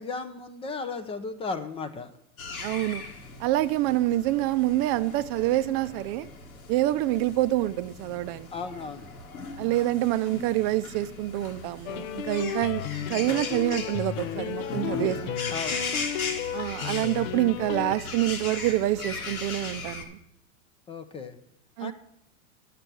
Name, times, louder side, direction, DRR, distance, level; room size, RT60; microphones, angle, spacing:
voice 1, 0.0-2.1 8.5-9.1 15.5-15.8 20.9-21.4 21.8-21.9, left 4 dB, 15° left, 10 dB, 0.4 m, -35 dB
sound 1, 2.4-20.0, left 3 dB, 90° left, 1.7 m, -38 dB
voice 2, 2.6-3.0 3.4-6.3 6.7-8.5 9.6-12.8 13.1-15.4 16.5-20.2 21.8-21.9, right 15 dB, 40° right, 14 dB, 0.5 m, -26 dB
sound 2, 11.9-18.0, left 10 dB, 65° left, 0.6 m, -33 dB
10.0 x 6.7 x 6.0 m, 0.80 s
hypercardioid pair, 115°, 41 cm